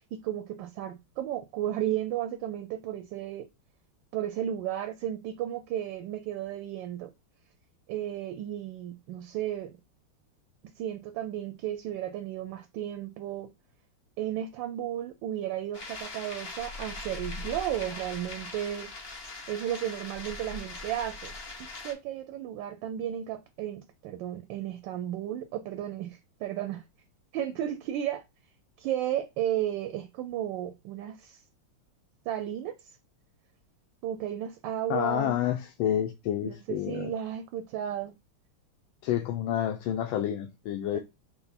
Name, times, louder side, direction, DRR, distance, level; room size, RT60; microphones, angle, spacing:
voice 1, 0.1-3.5 4.1-7.1 7.9-9.7 10.8-13.5 14.2-18.9 19.5-21.3 21.8-26.8 27.3-28.2 28.8-31.4 32.3-32.8 34.0-35.3 36.4-38.2 40.9-41.0, right 11 dB, 75° right, 1.1 m, -34 dB
sound 1, 15.7-21.9, left 3 dB, 45° left, 0.8 m, -41 dB
voice 2, 34.9-37.1 39.0-41.0, left 11 dB, 75° left, 1.3 m, -29 dB
5.5 x 2.1 x 4.0 m
omnidirectional pair, 2.3 m